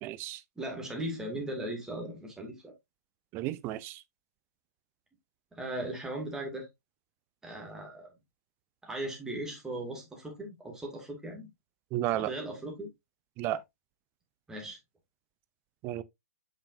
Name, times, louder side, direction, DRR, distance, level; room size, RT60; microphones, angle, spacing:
voice 1, 0.0-0.4 3.3-4.0 11.9-12.3 13.4-13.6 15.8-16.0, right 14 dB, 25° right, 0.5 m, -32 dB
voice 2, 0.6-2.7 5.5-6.7 7.4-8.1 8.8-11.5 12.1-12.9 14.5-14.8, right 1 dB, 5° right, 2.3 m, -38 dB
6.7 x 5.7 x 2.7 m
hypercardioid pair, 130°, 9 cm